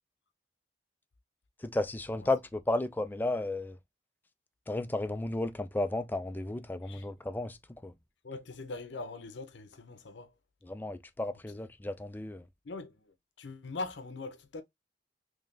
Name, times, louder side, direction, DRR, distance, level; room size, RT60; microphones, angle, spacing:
voice 1, 1.6-3.8 4.7-7.9 10.6-12.4, left 2 dB, 10° left, 0.3 m, -33 dB
voice 2, 8.2-10.3 12.6-14.6, left 3 dB, 70° left, 0.7 m, -42 dB
3.6 x 3.2 x 2.5 m
head